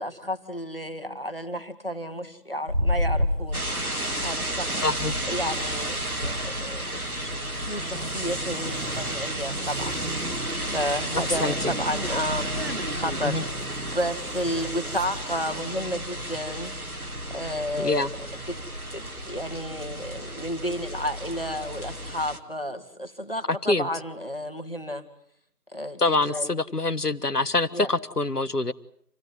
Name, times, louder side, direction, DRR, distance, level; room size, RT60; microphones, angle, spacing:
voice 1, 0.0-3.6 4.2-4.8 5.3-6.0 6.2-10.0 10.6-13.5 13.9-16.7 17.3-18.1 18.5-18.6 18.9-25.1 25.7-26.6 27.7-27.9, equal, 35° left, 9 dB, 2.1 m, -32 dB
sound 1, 2.7-3.7 4.2-4.4 4.7-15.4, left 1 dB, 40° right, 1.1 m, -33 dB
sound 2, 3.5-22.4, right 1 dB, 60° right, 2.3 m, -32 dB
voice 2, 4.8-5.1 11.4-11.7 13.2-13.4 17.8-18.1 23.7-23.9 26.0-28.7, left 2 dB, 70° left, 15 dB, 1.5 m, -25 dB
27.5 x 17.0 x 9.7 m, 0.68 s
figure-of-eight pair, 175°, 48 cm